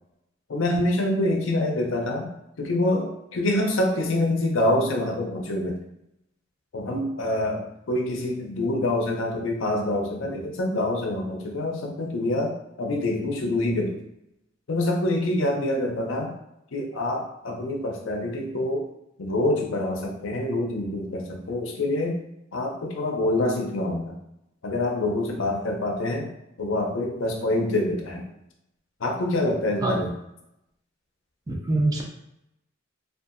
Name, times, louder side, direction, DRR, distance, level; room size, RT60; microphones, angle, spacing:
voice 1, 0.5-5.8 6.7-14.0 14.7-16.3 16.7-18.9 19.2-22.2 22.5-24.2 24.6-26.3 26.6-28.3 29.0-30.1, left 1 dB, 75° left, 1 dB, 0.5 m, -26 dB
voice 2, 31.5-32.0, right 2 dB, 20° right, 0 dB, 0.4 m, -24 dB
2.7 x 2.4 x 2.5 m, 0.83 s
head